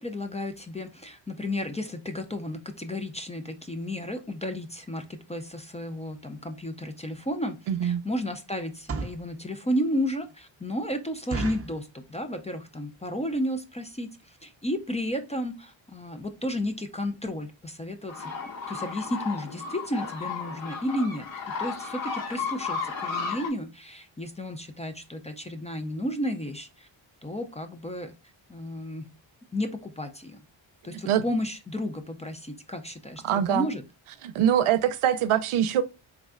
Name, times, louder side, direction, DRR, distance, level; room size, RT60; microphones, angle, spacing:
voice 1, 0.0-18.3 18.7-21.3 21.6-26.9 27.2-28.1 28.5-29.1 29.5-30.4 30.8-33.8, left 1 dB, 15° left, 0.3 m, -32 dB
sound 1, 7.7-7.9 8.6-9.3 9.8-9.9 10.3-10.4 10.7-10.8 11.3-11.8 12.4-12.7 13.0-13.1 13.3-13.5 14.1-14.2 14.4-14.6 14.9-15.0 15.2-15.3, right 4 dB, 30° right, 0.6 m, -34 dB
voice 2, 7.7-8.0 30.9-31.2 33.2-33.7 34.2-35.8, right 10 dB, 90° right, 0.6 m, -23 dB
sound 2, 18.1-23.5, left 5 dB, 65° left, 2.2 m, -34 dB
4.1 x 3.5 x 2.4 m
wide cardioid pair, 125°, 49 cm